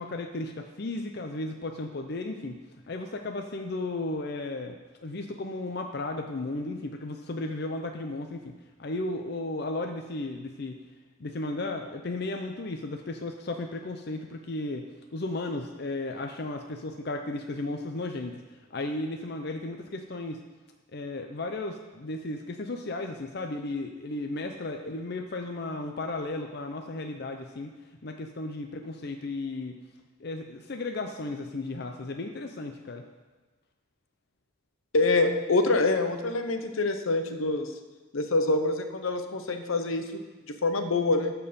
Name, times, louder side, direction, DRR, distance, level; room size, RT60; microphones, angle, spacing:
voice 1, 0.0-2.6 2.9-10.8 11.2-18.4 18.7-20.4 20.9-27.7 28.0-29.8 30.2-33.0, left 2 dB, 50° left, 4 dB, 0.6 m, -34 dB
voice 2, 34.9-37.7 38.1-40.2 40.5-41.3, left 2 dB, 80° left, 7 dB, 0.9 m, -26 dB
13.0 x 4.5 x 6.9 m, 1.3 s
head